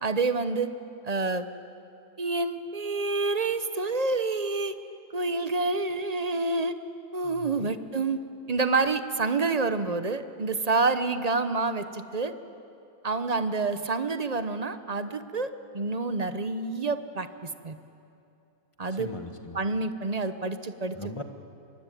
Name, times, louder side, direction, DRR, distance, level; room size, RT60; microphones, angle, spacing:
voice 1, 0.0-0.7 1.0-1.5 2.2-4.7 5.1-6.7 7.1-8.2 8.5-12.3 13.0-17.8 18.8-19.1 19.5-21.0, right 3 dB, 30° right, 11 dB, 0.8 m, -28 dB
voice 2, 7.2-7.7 18.9-19.6 20.9-21.2, left 2 dB, 20° left, 6 dB, 1.4 m, -39 dB
25.0 x 23.0 x 9.2 m, 2.7 s
omnidirectional pair, 1.7 m